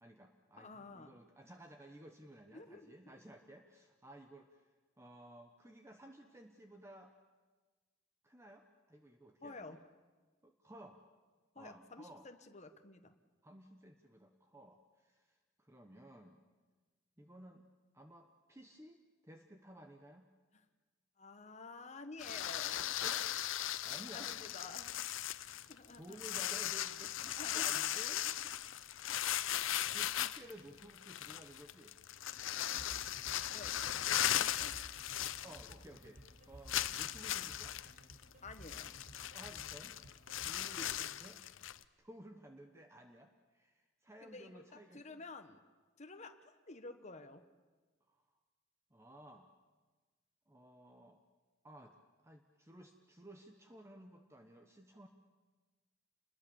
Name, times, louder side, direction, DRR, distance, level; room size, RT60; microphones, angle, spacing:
voice 1, 0.0-4.7 5.0-7.1 8.2-9.8 10.4-11.0 11.6-12.3 13.4-16.4 17.2-17.7 17.9-20.2 23.0-23.3 23.8-24.3 25.3-28.2 29.9-31.9 35.4-37.8 39.3-40.0 40.4-41.4 42.0-45.2 48.1-48.2 48.9-49.5 50.5-51.2 51.6-52.0 52.2-55.1, right 1 dB, 15° right, 5 dB, 1.0 m, -56 dB
voice 2, 0.6-1.1 2.5-2.9 9.4-9.8 11.5-13.1 21.2-23.0 24.1-24.9 25.7-26.2 27.4-28.5 29.1-29.4 33.5-34.8 38.4-38.9 40.8-40.9 44.2-45.6 46.0-47.4, left 3 dB, 35° left, 7 dB, 1.3 m, -51 dB
sound 1, 22.2-36.0 36.3-36.4 36.7-41.8, left 12 dB, 75° left, 0.7 m, -38 dB
sound 2, 32.8-40.5, right 1 dB, 40° right, 5.3 m, -55 dB
28.0 x 21.0 x 7.1 m, 1.3 s
head